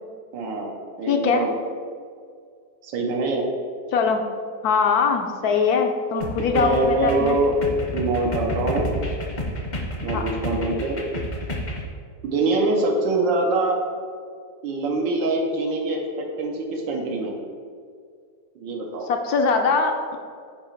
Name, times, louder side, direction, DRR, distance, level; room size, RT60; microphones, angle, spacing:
voice 1, 0.3-1.5 2.8-3.4 6.5-7.5 7.9-8.8 10.0-11.0 12.2-13.8 14.6-17.4 18.5-19.1, right 2 dB, 85° right, 0 dB, 1.6 m, -24 dB
voice 2, 1.1-1.4 3.9-4.2 4.6-7.4 10.1-10.3 19.1-20.2, left 5 dB, 70° left, 4 dB, 0.9 m, -21 dB
sound 1, 6.2-11.9, equal, 40° left, 0.6 m, -30 dB
8.5 x 2.9 x 5.7 m, 2.2 s
omnidirectional pair, 1.9 m